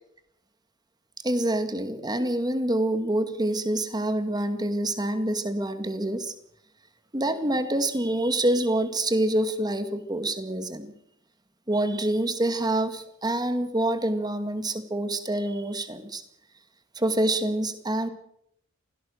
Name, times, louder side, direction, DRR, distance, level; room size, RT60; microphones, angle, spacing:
voice 1, 1.2-6.3 7.1-10.9 11.7-16.2 17.0-18.1, right 1 dB, 20° right, 9 dB, 2.1 m, -26 dB
25.0 x 17.0 x 6.4 m, 0.76 s
head